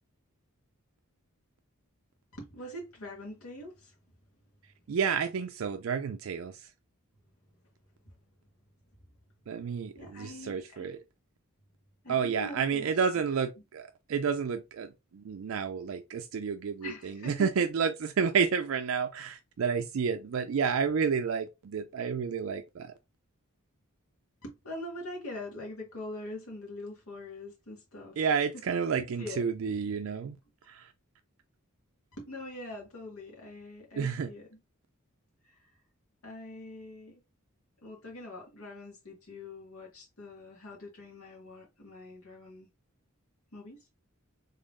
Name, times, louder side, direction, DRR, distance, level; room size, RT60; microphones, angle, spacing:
voice 1, 2.4-4.0 8.1-8.2 9.9-10.9 12.0-13.1 16.8-17.7 20.8-20.9 24.4-29.5 32.2-34.6 35.4-35.7 36.2-37.2 37.8-42.7 43.5-43.8, left 1 dB, 75° left, 1.8 m, -44 dB
voice 2, 4.6-6.7 9.5-11.0 12.1-22.9 28.2-30.4 30.6-30.9 34.0-34.3, right 6 dB, 65° right, 0.4 m, -30 dB
3.7 x 3.5 x 2.5 m
head